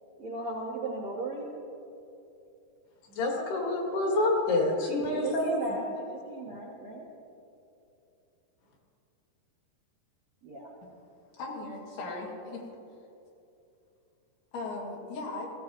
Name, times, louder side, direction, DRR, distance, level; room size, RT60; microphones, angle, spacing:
voice 1, 0.2-1.5 4.8-7.0 10.4-10.7, right 2 dB, 60° right, -5 dB, 1.7 m, -37 dB
voice 2, 3.1-5.7, left 2 dB, 65° left, 0 dB, 3.7 m, -27 dB
voice 3, 11.4-12.6 14.5-15.5, left 2 dB, 90° left, -3 dB, 4.7 m, -37 dB
20.0 x 15.5 x 3.0 m, 2.7 s
omnidirectional pair, 5.1 m